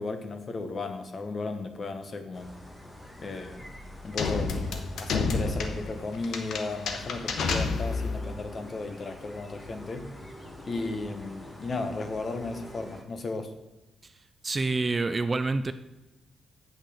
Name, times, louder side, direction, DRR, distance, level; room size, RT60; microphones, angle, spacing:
voice 1, 0.0-2.5 3.2-3.7 4.0-4.5 5.0-10.1 10.7-13.5, left 3 dB, 35° left, 7 dB, 1.0 m, -35 dB
sound 1, 2.3-13.0, left 1 dB, 15° left, 1.2 m, -46 dB
sound 2, 4.2-8.3, left 4 dB, 80° left, 1.1 m, -30 dB
voice 2, 14.4-15.7, right 3 dB, 25° right, 11 dB, 0.3 m, -27 dB
8.4 x 6.3 x 6.4 m, 1.0 s
wide cardioid pair, 165°, 0 cm